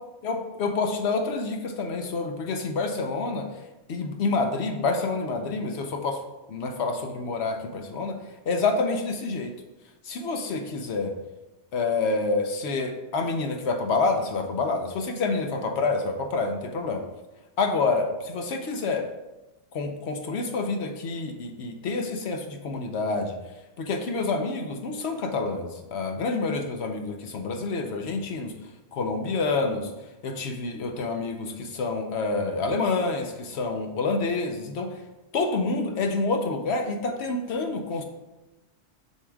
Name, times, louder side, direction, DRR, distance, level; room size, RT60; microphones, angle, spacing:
voice 1, 0.2-3.5 3.9-6.2 6.5-8.2 8.5-9.5 10.1-11.1 11.7-17.0 17.6-19.1 19.7-23.4 23.8-28.5 28.9-29.9 30.2-34.9 35.3-38.0, left 3 dB, 65° left, 5 dB, 1.0 m, -28 dB
7.4 x 6.8 x 2.3 m, 1.1 s
omnidirectional pair, 1.3 m